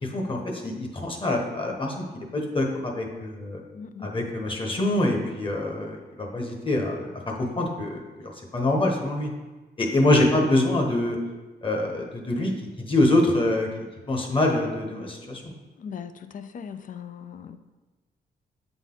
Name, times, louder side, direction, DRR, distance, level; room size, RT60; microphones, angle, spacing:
voice 1, 0.0-3.6 4.0-9.3 9.8-11.2 11.6-12.5 12.8-13.7 14.1-15.5, left 1 dB, 30° left, 1 dB, 1.1 m, -25 dB
voice 2, 3.7-4.3 15.8-17.6, left 7 dB, 50° left, 11 dB, 0.4 m, -39 dB
8.2 x 4.0 x 3.8 m, 1.2 s
cardioid pair, 120°, 18 cm